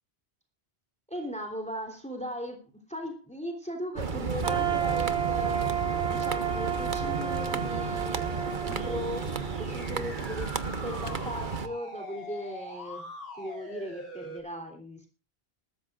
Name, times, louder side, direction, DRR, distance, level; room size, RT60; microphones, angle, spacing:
voice 1, 1.1-2.6 2.9-5.8 6.0-8.2 8.6-9.3 9.6-10.5 10.8-13.1 13.4-15.1, equal, 5° left, 3 dB, 3.3 m, -38 dB
sound 1, 4.0-11.7, right 4 dB, 50° right, 1.2 m, -33 dB
sound 2, 4.4-10.3, right 9 dB, 90° right, 2.1 m, -32 dB
sound 3, 7.9-14.4, left 1 dB, 65° left, 5.2 m, -44 dB
20.0 x 13.5 x 2.4 m, 0.29 s
omnidirectional pair, 1.1 m